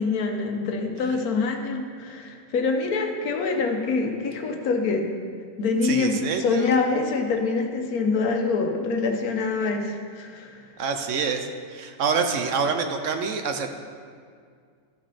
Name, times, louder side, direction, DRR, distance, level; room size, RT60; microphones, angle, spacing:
voice 1, 0.0-5.1 5.6-10.6, left 4 dB, 90° left, 4 dB, 1.4 m, -25 dB
voice 2, 5.8-6.7 10.8-13.7, right 5 dB, 65° right, 6 dB, 1.0 m, -26 dB
13.5 x 6.2 x 4.2 m, 2.1 s
omnidirectional pair, 1.5 m